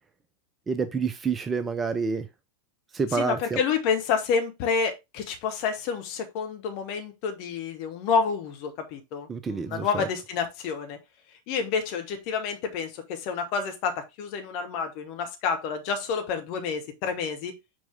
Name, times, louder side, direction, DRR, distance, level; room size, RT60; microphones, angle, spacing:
voice 1, 0.7-2.3 2.9-3.6 9.3-10.1, right 5 dB, 20° right, 0.5 m, -28 dB
voice 2, 3.1-11.0 11.5-17.5, left 6 dB, 45° left, 1.5 m, -29 dB
6.1 x 4.7 x 3.4 m
figure-of-eight pair, 90°, 0 cm